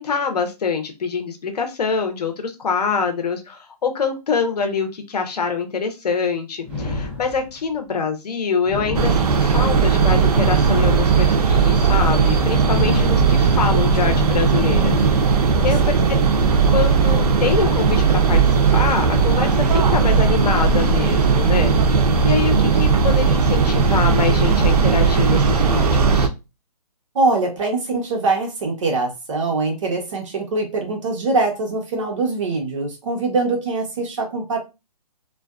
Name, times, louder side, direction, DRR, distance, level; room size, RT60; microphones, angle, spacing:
voice 1, 0.0-16.0 16.7-21.7 22.2-26.3, left 5 dB, 75° left, 6 dB, 0.7 m, -25 dB
sound 1, 6.6-7.7 8.6-9.7 10.6-11.7 12.6-13.7 14.6-15.7, left 2 dB, 5° right, 0.5 m, -30 dB
sound 2, 8.9-26.3, right 5 dB, 70° right, 0.5 m, -17 dB
voice 2, 15.8-16.3 27.1-34.6, right 3 dB, 50° right, 2 dB, 0.9 m, -23 dB
2.5 x 2.2 x 2.3 m, 0.26 s
hypercardioid pair, 155°, 20 cm